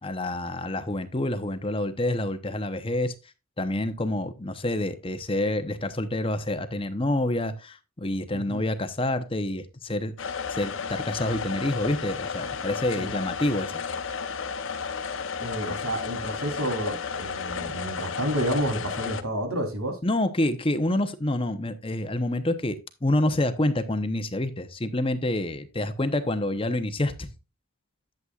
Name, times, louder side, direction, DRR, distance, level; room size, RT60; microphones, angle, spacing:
voice 1, 0.0-3.1 3.6-10.1 10.5-13.8 20.0-27.3, left 1 dB, 25° left, 0.8 m, -27 dB
voice 2, 8.3-8.6 13.0-13.1 15.4-20.0, right 1 dB, 85° right, 3.5 m, -30 dB
sound 1, 10.2-19.2, left 6 dB, 60° left, 0.9 m, -33 dB
11.0 x 7.9 x 2.4 m
head